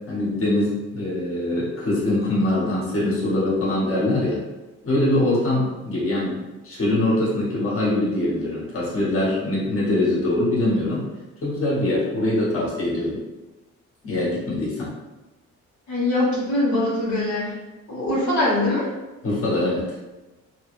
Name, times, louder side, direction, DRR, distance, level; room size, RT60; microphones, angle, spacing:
voice 1, 0.1-4.4 4.8-11.0 11.4-13.2 14.0-14.9 19.2-19.8, left 1 dB, 45° left, -7 dB, 1.4 m, -23 dB
voice 2, 15.9-17.5 17.9-18.9, left 1 dB, 70° left, -7 dB, 1.3 m, -22 dB
3.3 x 2.1 x 3.2 m, 1.1 s
cardioid pair, 90°, 30 cm